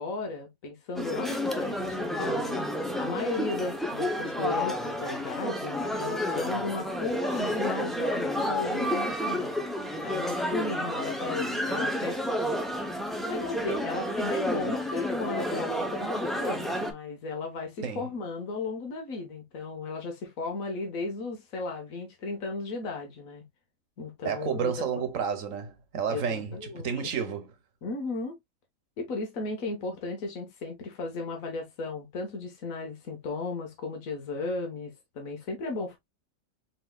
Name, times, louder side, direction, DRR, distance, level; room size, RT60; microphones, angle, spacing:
voice 1, 0.0-2.6 3.0-9.6 10.0-12.2 13.3-23.4 24.0-24.7 26.1-26.9 27.8-28.4 29.0-36.0, left 3 dB, 75° left, 1.6 m, -35 dB
sound 1, 0.9-16.9, equal, ahead, 0.4 m, -30 dB
voice 2, 24.2-27.5, right 7 dB, 70° right, 1.3 m, -31 dB
4.3 x 4.1 x 2.2 m
omnidirectional pair, 1.4 m